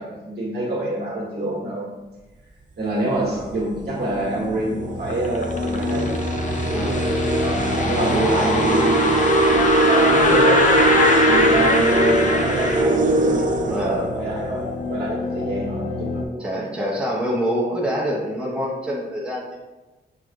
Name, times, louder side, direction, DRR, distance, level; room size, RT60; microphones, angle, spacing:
voice 1, 0.0-1.9 2.8-6.0 7.4-10.7 11.2-16.6, right 1 dB, 60° right, -5 dB, 1.4 m, -26 dB
sound 1, 3.2-3.4 4.3-4.4 4.8-14.6, right 2 dB, 45° right, 0.4 m, -21 dB
sound 2, 3.9-16.2, left 3 dB, 90° left, 0.5 m, -30 dB
sound 3, 5.1-12.8, left 2 dB, 40° left, 0.6 m, -22 dB
voice 2, 6.7-7.0 13.7-14.1 16.4-19.4, equal, 5° right, -4 dB, 0.7 m, -26 dB
6.2 x 2.3 x 2.5 m, 1.2 s
cardioid pair, 95°, 19 cm